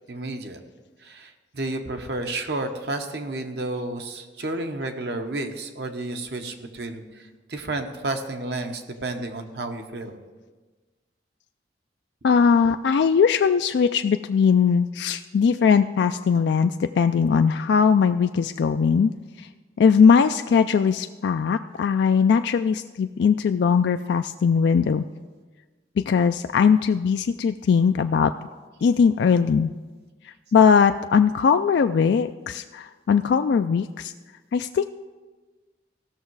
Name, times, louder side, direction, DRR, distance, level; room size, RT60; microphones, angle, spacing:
voice 1, 0.1-0.6 1.0-10.2, right 2 dB, 60° right, 6 dB, 1.0 m, -31 dB
voice 2, 12.2-19.1 19.4-19.5 19.8-25.0 26.0-28.3 28.8-29.7 30.5-34.1 34.5-34.9, left 6 dB, 70° left, 8 dB, 0.3 m, -20 dB
16.0 x 6.4 x 4.7 m, 1.3 s
head